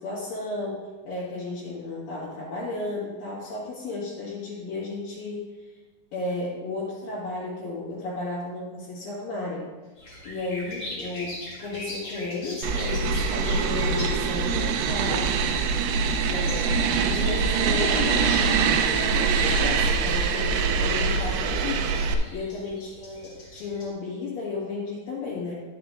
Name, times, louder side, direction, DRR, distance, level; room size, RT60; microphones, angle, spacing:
voice 1, 0.0-5.5 6.1-9.6 10.2-15.3 16.3-22.0 22.3-25.5, left 3 dB, 65° left, -9 dB, 3.2 m, -33 dB
sound 1, 10.0-23.9, left 1 dB, 40° left, 1.7 m, -41 dB
sound 2, 12.6-22.1, right 5 dB, 85° right, 2.6 m, -24 dB
10.5 x 10.5 x 2.5 m, 1.3 s
omnidirectional pair, 4.5 m